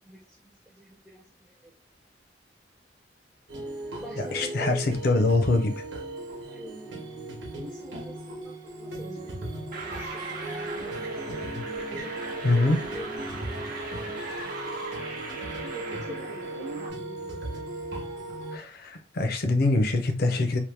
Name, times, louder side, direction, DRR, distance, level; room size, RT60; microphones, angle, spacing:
voice 1, 0.0-1.7 4.0-5.6 6.4-7.1 7.5-10.3 11.8-13.4 14.1-14.9 15.7-17.0, equal, ahead, 0.5 m, -46 dB
sound 1, 3.5-18.6, right 1 dB, 80° right, 1.0 m, -37 dB
voice 2, 4.3-5.7 12.4-12.8 18.5-20.6, left 2 dB, 55° left, 0.6 m, -24 dB
sound 2, 9.7-16.9, right 2 dB, 50° right, 0.9 m, -38 dB
2.9 x 2.1 x 3.3 m
head